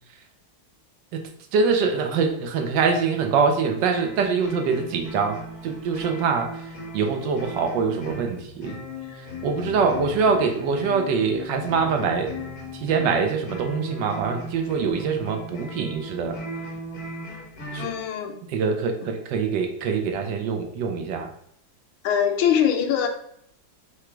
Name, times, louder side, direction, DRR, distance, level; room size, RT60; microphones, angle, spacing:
voice 1, 1.5-8.8 9.1-12.3 12.7-16.4 17.7-17.9 18.5-21.3, right 5 dB, 70° right, 4 dB, 1.2 m, -24 dB
sound 1, 3.9-18.0, left 1 dB, 55° left, 1.6 m, -38 dB
voice 2, 17.8-18.4 22.0-23.1, left 8 dB, 90° left, 6 dB, 1.4 m, -22 dB
4.9 x 2.3 x 4.4 m, 0.70 s
omnidirectional pair, 2.1 m